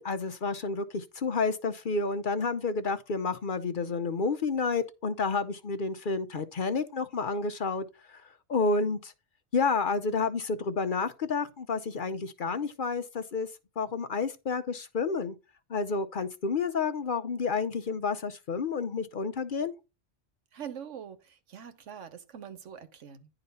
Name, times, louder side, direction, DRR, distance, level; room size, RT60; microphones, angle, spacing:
voice 1, 0.0-7.8 8.5-9.1 9.5-13.5 13.8-15.3 15.7-19.7, left 4 dB, 50° left, 0.8 m, -30 dB
voice 2, 20.5-23.3, right 8 dB, 80° right, 1.4 m, -44 dB
10.5 x 3.9 x 5.4 m
omnidirectional pair, 1.2 m